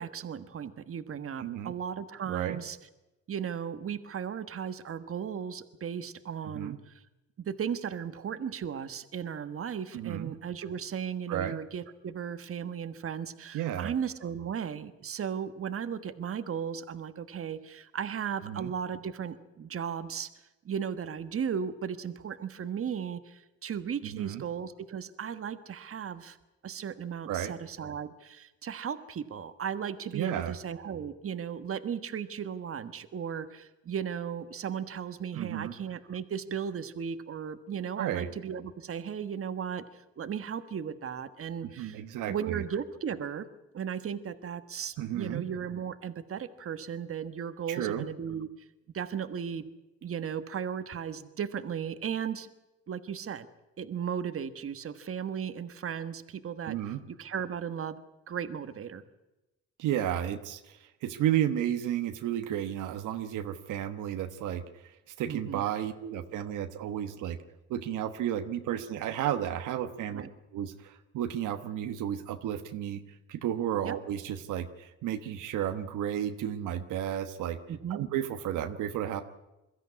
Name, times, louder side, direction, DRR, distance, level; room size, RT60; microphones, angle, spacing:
voice 1, 0.0-2.8 3.3-7.0 7.4-20.3 20.6-26.4 26.6-42.0 42.3-43.5 43.7-48.5 48.9-49.7 50.0-52.5 52.9-53.5 53.8-56.8 57.1-58.0 58.3-59.0 65.3-65.6 70.1-70.3 73.8-74.0 77.7-78.0, right 7 dB, 45° right, 10 dB, 1.4 m, -36 dB
voice 2, 1.4-1.7 2.3-2.6 6.4-6.8 9.9-10.3 11.3-11.6 13.5-13.9 18.4-18.7 24.0-24.4 27.3-27.5 30.1-30.5 35.4-35.7 38.0-38.3 41.6-42.6 45.0-45.4 47.7-48.1 56.6-57.0 59.8-67.4 67.7-70.2 70.5-73.0 73.3-77.6 77.9-79.2, right 11 dB, 90° right, 8 dB, 1.2 m, -32 dB
22.5 x 13.5 x 9.7 m, 1.0 s
cardioid pair, 90°, 30 cm